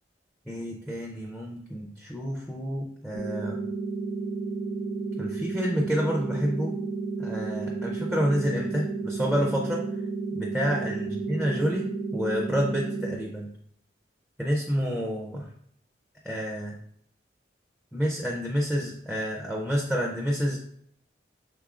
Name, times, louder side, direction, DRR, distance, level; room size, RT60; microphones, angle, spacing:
voice 1, 0.5-3.6 5.2-6.8 7.2-9.8 10.3-11.9 12.1-13.5 14.4-15.5 16.2-16.7 17.9-20.6, equal, ahead, -1 dB, 0.4 m, -29 dB
sound 1, 3.1-13.1, right 3 dB, 90° right, 0.8 m, -32 dB
4.8 x 3.5 x 2.4 m, 0.66 s
head